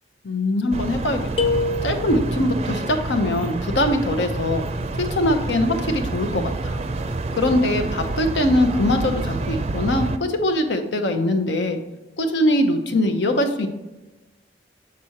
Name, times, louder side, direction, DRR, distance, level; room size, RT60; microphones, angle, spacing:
voice 1, 0.2-4.6 5.0-6.8 7.3-11.8 12.2-13.7, left 1 dB, 90° left, 6 dB, 0.9 m, -22 dB
sound 1, 0.7-10.2, right 2 dB, 35° right, 0.4 m, -28 dB
sound 2, 1.4-2.6, left 3 dB, 30° left, 0.4 m, -25 dB
7.6 x 6.1 x 2.9 m, 1.1 s
head